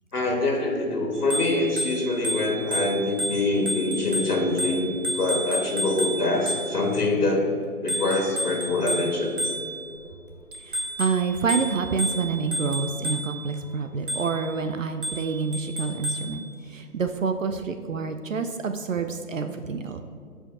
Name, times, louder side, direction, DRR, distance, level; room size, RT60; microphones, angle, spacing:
voice 1, 0.1-7.5 7.8-9.6, left 2 dB, 85° left, 1 dB, 1.7 m, -25 dB
Bicycle bell, 1.2-7.0 7.9-10.0 10.5-13.5 14.1-14.5 15.0-16.4, right 1 dB, 35° right, 0.9 m, -31 dB
voice 2, 10.7-20.0, right 5 dB, 60° right, 8 dB, 0.5 m, -28 dB
13.5 x 5.0 x 2.6 m, 2.3 s
hypercardioid pair, 165°, 44 cm